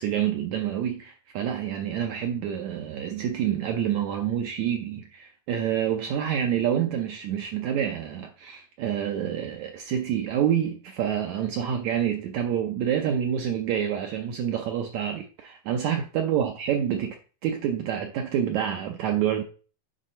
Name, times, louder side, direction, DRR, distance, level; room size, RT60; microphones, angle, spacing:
voice 1, 0.0-17.2 17.4-19.4, right 9 dB, 75° right, 1.7 m, -27 dB
7.8 x 4.1 x 5.6 m
omnidirectional pair, 4.0 m